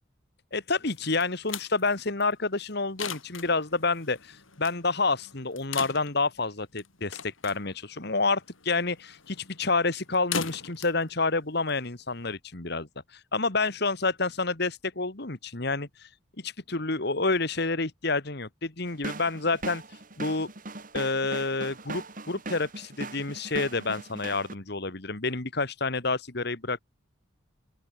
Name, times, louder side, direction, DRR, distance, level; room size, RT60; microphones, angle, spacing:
voice 1, 0.5-12.9 13.3-15.9 16.4-19.8 20.2-20.5 20.9-26.8, left 3 dB, 55° left, 2.1 m, -28 dB
sound 1, 0.9-12.3, left 7 dB, 85° left, 5.3 m, -41 dB
sound 2, 18.9-24.5, right 2 dB, 45° right, 3.4 m, -39 dB
open air
head